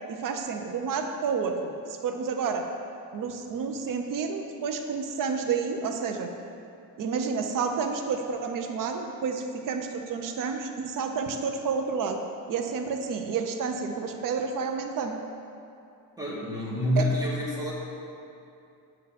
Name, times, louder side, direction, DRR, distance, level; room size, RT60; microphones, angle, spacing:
voice 1, 0.1-1.7 2.0-2.6 3.1-6.3 7.0-12.2 12.5-15.1 17.0-17.1, right 5 dB, 50° right, 4 dB, 0.7 m, -30 dB
voice 2, 16.2-17.7, left 1 dB, 10° right, -6 dB, 1.7 m, -27 dB
7.8 x 6.6 x 4.1 m, 2.7 s
cardioid pair, 135°, 41 cm